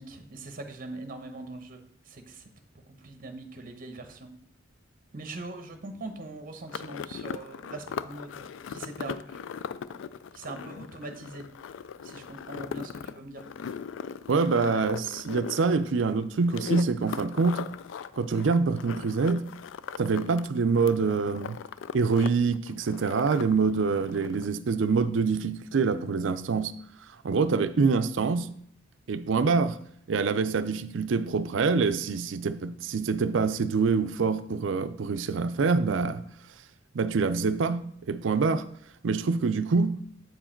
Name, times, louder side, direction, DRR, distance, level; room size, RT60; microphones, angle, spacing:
voice 1, 0.0-2.5 2.7-4.3 5.1-9.4 10.3-11.5 12.0-13.4, right 2 dB, 45° right, 0.9 m, -42 dB
sound 1, 6.7-20.5 20.7-22.3 22.5-24.5, left 7 dB, 70° left, 0.3 m, -39 dB
voice 2, 14.3-17.6 18.1-19.4 20.0-21.6 21.9-26.7 27.2-28.5 29.1-29.8 30.1-36.2 36.9-38.6 39.0-40.0, right 4 dB, 70° right, 0.5 m, -25 dB
7.8 x 4.7 x 4.4 m
head